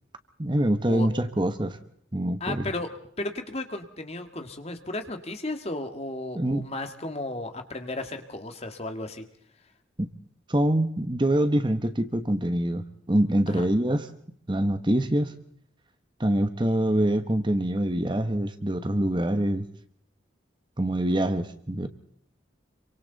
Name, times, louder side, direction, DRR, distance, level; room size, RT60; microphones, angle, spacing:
voice 1, 0.4-1.8 2.1-2.6 6.3-6.6 10.0-10.1 10.5-14.1 14.5-15.3 16.2-19.6 20.8-21.9, right 1 dB, 25° right, 10 dB, 1.1 m, -25 dB
voice 2, 2.4-2.9 3.2-9.2 13.5-13.7, left 2 dB, 30° left, 7 dB, 1.8 m, -34 dB
27.0 x 24.5 x 4.0 m, 0.65 s
head